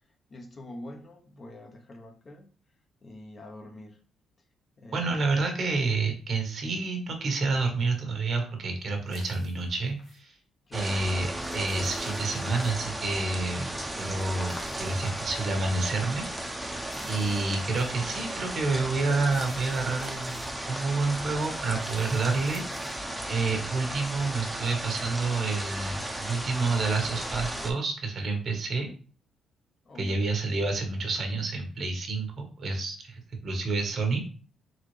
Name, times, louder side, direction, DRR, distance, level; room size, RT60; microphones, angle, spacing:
voice 1, 0.1-2.5 3.0-4.0 4.8-5.3 10.7-10.9 17.6-18.2 29.8-30.2, left 1 dB, 40° left, 0.8 m, -45 dB
voice 2, 4.9-10.3 10.7-11.3 11.5-16.5 17.1-23.0 23.3-28.9 30.0-34.3, right 3 dB, 55° right, 1.2 m, -29 dB
sound 1, 9.1-10.2 11.2-12.7 13.9-15.5 16.8-18.1 19.1-20.5 21.5-23.0, left 4 dB, 65° left, 0.9 m, -54 dB
sound 2, 10.7-27.7, right 1 dB, 10° right, 0.8 m, -35 dB
4.1 x 3.6 x 3.2 m
cardioid pair, 90°, 0 cm